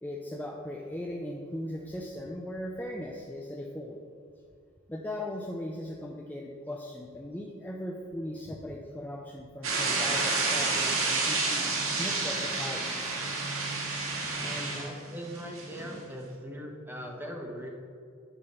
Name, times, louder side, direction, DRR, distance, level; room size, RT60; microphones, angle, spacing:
voice 1, 0.0-4.0 4.9-13.2, left 1 dB, 10° left, -1 dB, 0.5 m, -38 dB
sound 1, 9.6-16.0, right 3 dB, 85° right, 2.0 m, -30 dB
voice 2, 14.4-17.7, equal, 10° right, 0 dB, 1.2 m, -40 dB
9.7 x 3.8 x 6.7 m, 2.4 s
head